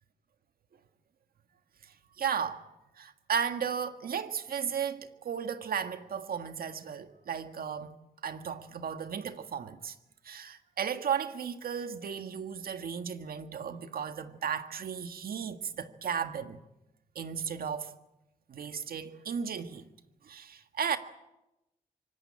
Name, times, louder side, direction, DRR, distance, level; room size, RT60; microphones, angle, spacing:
voice 1, 2.2-2.6 3.0-8.0 8.2-9.9 10.2-16.6 17.1-17.9 18.5-19.8 20.2-21.0, right 7 dB, 80° right, 1.7 m, -35 dB
25.0 x 18.5 x 8.7 m
cardioid pair, 65°, 15 cm